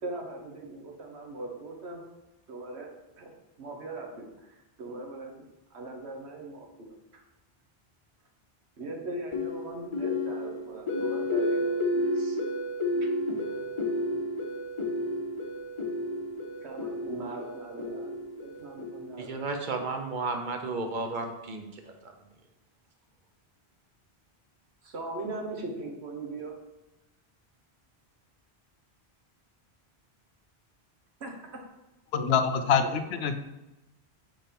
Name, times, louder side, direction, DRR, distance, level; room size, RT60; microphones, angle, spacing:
voice 1, 0.0-2.0 2.5-2.9 3.2-5.3 5.7-7.2 8.8-12.4 16.6-19.3 24.8-26.5 31.2-31.4 32.1-32.4 32.8-33.3, right 2 dB, 90° right, 2 dB, 1.3 m, -40 dB
sound 1, 9.3-19.4, left 1 dB, 35° left, 0.7 m, -31 dB
voice 2, 19.2-22.1, right 3 dB, 50° right, 4 dB, 0.9 m, -33 dB
voice 3, 32.1-32.8 33.2-33.4, left 7 dB, 75° left, 8 dB, 0.8 m, -24 dB
5.4 x 4.4 x 5.2 m, 0.97 s
omnidirectional pair, 1.1 m